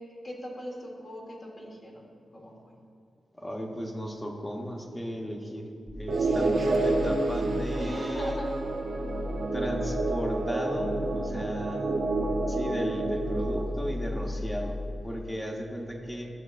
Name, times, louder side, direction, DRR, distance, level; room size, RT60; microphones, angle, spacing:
voice 1, 0.0-2.0 2.3-2.5 7.7-8.5, left 1 dB, 40° left, -2 dB, 1.6 m, -39 dB
voice 2, 3.4-5.7 5.9-8.4 9.5-12.0 12.5-14.8 15.0-16.3, equal, 15° left, 1 dB, 1.0 m, -35 dB
sound 1, 5.9-15.0, left 1 dB, ahead, 0.7 m, -37 dB
sound 2, 6.1-13.6, right 2 dB, 75° right, 0.8 m, -29 dB
12.0 x 6.0 x 2.5 m, 2.3 s
cardioid pair, 75°, 0 cm